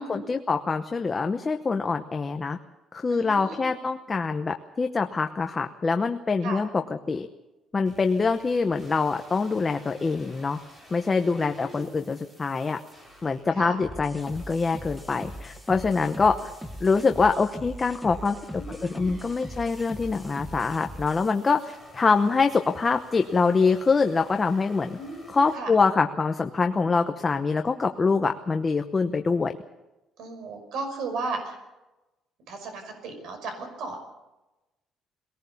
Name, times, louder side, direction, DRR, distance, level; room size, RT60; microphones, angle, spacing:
voice 1, 0.0-2.6 2.9-6.8 7.1-7.3 7.7-10.6 10.9-12.8 13.2-16.4 16.8-21.6 21.9-25.0 25.3-29.5, left 4 dB, 20° left, 6 dB, 0.8 m, -24 dB
voice 2, 3.1-3.7 6.4-6.6 11.4-11.9 13.5-13.8 18.6-19.1 25.0-25.7 30.2-31.6 32.5-34.0, right 3 dB, 70° right, 6 dB, 5.6 m, -35 dB
sound 1, 7.8-25.6, left 1 dB, 20° right, 4.7 m, -53 dB
sound 2, 13.8-21.3, equal, ahead, 1.3 m, -40 dB
21.5 x 18.5 x 7.1 m, 1.0 s
cardioid pair, 170°, 0 cm